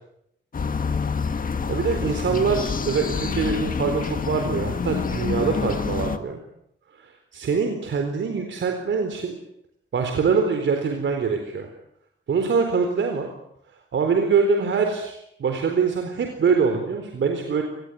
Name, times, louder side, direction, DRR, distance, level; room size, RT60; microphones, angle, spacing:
sound 1, 0.5-6.2, left 5 dB, 45° left, 1.8 m, -27 dB
voice 1, 1.7-6.4 7.0-9.4 9.9-11.7 12.3-13.3 13.9-17.6, right 5 dB, 70° right, 5 dB, 4.1 m, -24 dB
26.5 x 20.0 x 9.4 m, 0.77 s
wide cardioid pair, 165°, 20 cm